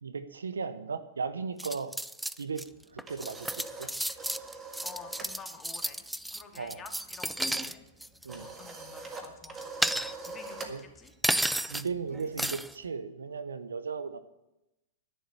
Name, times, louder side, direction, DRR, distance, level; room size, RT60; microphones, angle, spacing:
voice 1, 0.0-1.9 2.4-2.7 2.9-3.9 6.6-6.8 8.2-8.5 10.7-10.8 11.7-14.2, right 5 dB, 85° right, 12 dB, 0.8 m, -36 dB
sound 1, 1.6-2.6 3.0-7.7 8.0-8.3 9.4-10.5 11.2-11.9 12.4-12.7, right 1 dB, 5° right, 0.4 m, -32 dB
sound 2, 2.7-5.4 5.6-5.9 6.2-12.9, right 3 dB, 20° right, 1.8 m, -45 dB
voice 2, 4.8-6.0 6.3-7.8 8.3-10.0 10.2-11.1, left 5 dB, 20° left, 3 dB, 2.3 m, -50 dB
11.0 x 10.0 x 6.7 m, 0.93 s
hypercardioid pair, 110°, 0 cm